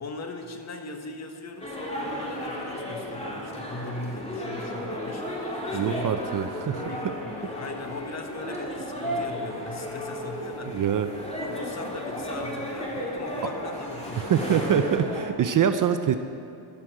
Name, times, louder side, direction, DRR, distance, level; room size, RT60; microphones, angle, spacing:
voice 1, 0.0-6.2 6.6-10.9 11.4-14.4, left 2 dB, 30° left, 4 dB, 1.4 m, -39 dB
sound 1, 1.6-15.3, left 1 dB, 15° left, 2.4 m, -34 dB
voice 2, 5.7-6.8 10.7-11.1 14.2-16.2, right 8 dB, 40° right, 9 dB, 0.6 m, -24 dB
14.0 x 11.5 x 4.8 m, 2.7 s
cardioid pair, 120°, 49 cm